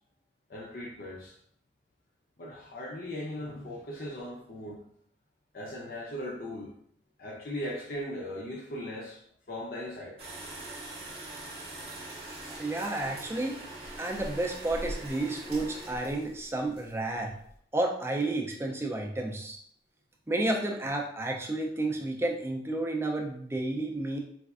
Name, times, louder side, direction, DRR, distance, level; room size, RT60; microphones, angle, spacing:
voice 1, 0.5-1.3 2.4-4.8 5.5-6.7 7.2-9.2 9.5-10.2, left 1 dB, 55° left, -4 dB, 0.6 m, -38 dB
sound 1, 10.2-17.5, right 1 dB, 35° right, 0.7 m, -42 dB
voice 2, 12.5-13.6 14.0-17.3 17.7-19.6 20.3-24.2, right 2 dB, 15° right, 1 dB, 0.3 m, -31 dB
4.0 x 2.4 x 2.4 m, 0.64 s
head